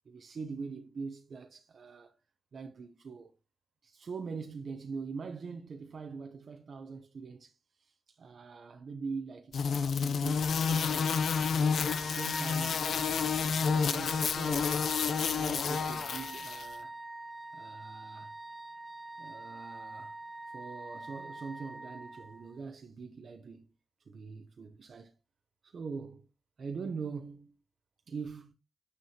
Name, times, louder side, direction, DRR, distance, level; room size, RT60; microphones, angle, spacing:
voice 1, 0.1-2.2 2.5-3.3 3.8-11.2 11.7-13.3 13.7-14.8 15.3-16.9 17.5-18.3 19.2-20.2 20.5-23.7 24.1-25.1 25.6-26.3 26.6-27.5 28.1-28.5, right 5 dB, 60° right, 0.7 m, -43 dB
sound 1, 9.5-16.7, left 6 dB, 75° left, 0.6 m, -30 dB
Wind instrument woodwind instrument, 11.8-22.6, right 2 dB, 10° right, 0.7 m, -45 dB
7.4 x 6.3 x 2.9 m
cardioid pair, 70°, 0 cm